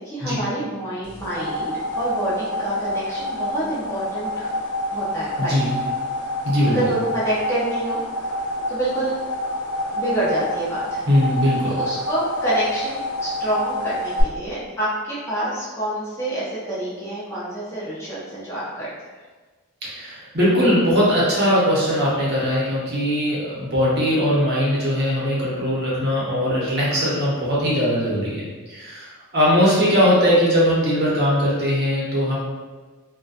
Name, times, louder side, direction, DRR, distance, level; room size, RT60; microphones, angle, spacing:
voice 1, 0.0-4.5 4.9-5.9 6.7-8.3 8.7-9.1 9.9-11.0 11.6-18.9, right 1 dB, 10° left, -9 dB, 0.5 m, -27 dB
sound 1, 1.0-14.2, left 1 dB, 85° left, 0.5 m, -28 dB
voice 2, 5.4-5.7 6.4-6.8 11.1-11.8 19.8-28.4 28.7-32.4, equal, 50° right, -7 dB, 0.8 m, -20 dB
2.6 x 2.2 x 2.4 m, 1.3 s
head